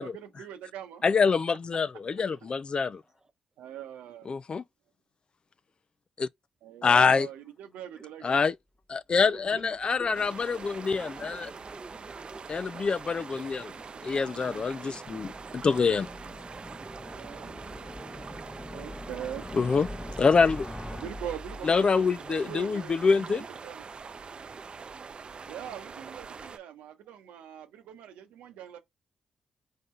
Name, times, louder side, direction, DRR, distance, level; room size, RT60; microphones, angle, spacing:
voice 1, 0.0-1.0 3.6-4.3 6.6-8.4 10.1-10.4 13.9-14.6 17.1-17.6 18.7-19.5 20.9-21.9 22.3-23.8 25.5-28.8, right 10 dB, 80° right, 0.8 m, -42 dB
voice 2, 1.0-3.0 4.3-4.6 6.2-6.3 6.8-7.3 8.2-8.5 8.9-11.5 12.5-13.7 14.0-16.1 19.5-19.9 20.2-20.7 21.6-23.4, left 5 dB, 45° left, 0.3 m, -25 dB
voice 3, 2.1-2.5 7.9-8.0 9.3-10.2 10.5-10.6 10.9-12.8 15.5-15.7 24.1-24.7, right 2 dB, 30° right, 0.9 m, -50 dB
sound 1, 9.2-22.1, left 1 dB, 15° left, 0.9 m, -45 dB
sound 2, 10.1-26.6, right 5 dB, 50° right, 0.5 m, -44 dB
4.0 x 3.7 x 3.1 m
hypercardioid pair, 40°, 2 cm